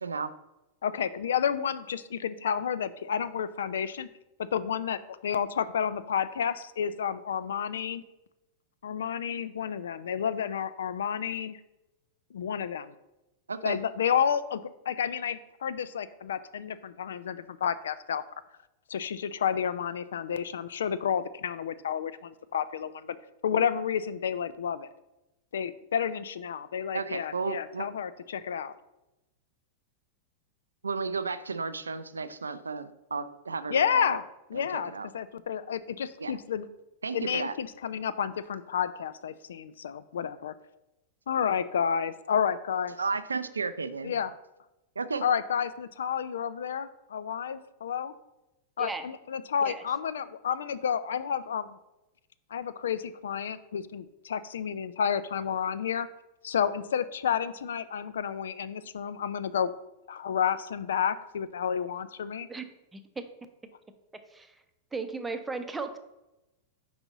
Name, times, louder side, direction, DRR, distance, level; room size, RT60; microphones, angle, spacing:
voice 1, 0.0-0.3 13.5-13.8 26.9-27.9 30.8-34.2 34.5-35.1 36.2-36.3 37.0-37.5 43.0-44.1 45.0-45.2, right 4 dB, 90° right, 12 dB, 0.3 m, -33 dB
voice 2, 0.8-4.1 4.4-8.0 8.8-11.6 12.3-12.9 13.6-18.2 18.9-23.2 23.4-24.9 25.5-28.7 33.7-36.7 37.1-40.5 41.3-43.0 44.0-44.3 45.2-48.1 48.8-51.8 52.5-56.1 56.4-59.7 60.1-62.5, left 8 dB, 75° left, 15 dB, 0.3 m, -30 dB
voice 3, 62.9-63.3 64.3-64.5 64.9-66.0, right 4 dB, 10° right, 8 dB, 0.6 m, -35 dB
5.2 x 4.7 x 4.0 m, 0.95 s
hypercardioid pair, 100°, 0 cm